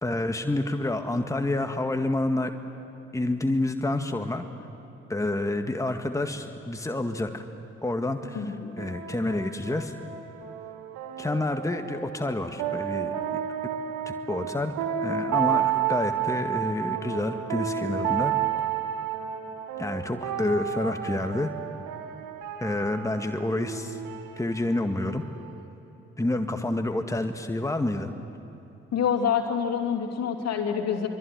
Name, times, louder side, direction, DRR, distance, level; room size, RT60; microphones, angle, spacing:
voice 1, 0.0-2.5 3.1-4.5 5.1-7.4 7.8-10.0 11.2-13.4 14.1-14.7 15.0-18.3 19.8-21.5 22.6-24.0 24.4-25.2 26.2-28.1, left 2 dB, 10° left, 6 dB, 1.9 m, -28 dB
sound 1, 8.2-25.7, right 9 dB, 70° right, 1.8 m, -32 dB
voice 2, 8.3-8.7 28.9-31.1, left 7 dB, 55° left, 4 dB, 2.9 m, -27 dB
25.0 x 24.5 x 9.7 m, 2.9 s
figure-of-eight pair, 45°, 31 cm